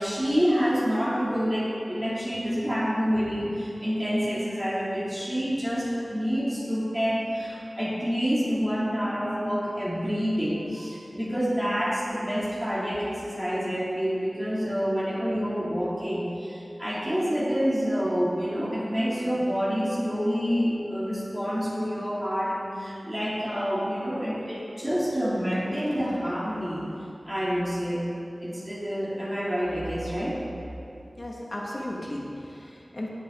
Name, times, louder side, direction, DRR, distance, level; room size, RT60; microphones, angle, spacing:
voice 1, 0.0-26.9 27.3-28.1 28.4-30.4, equal, 15° right, -9 dB, 3.2 m, -27 dB
voice 2, 31.2-33.1, left 1 dB, 50° left, -3 dB, 2.4 m, -35 dB
19.0 x 7.8 x 4.1 m, 2.7 s
wide cardioid pair, 55°, 0 cm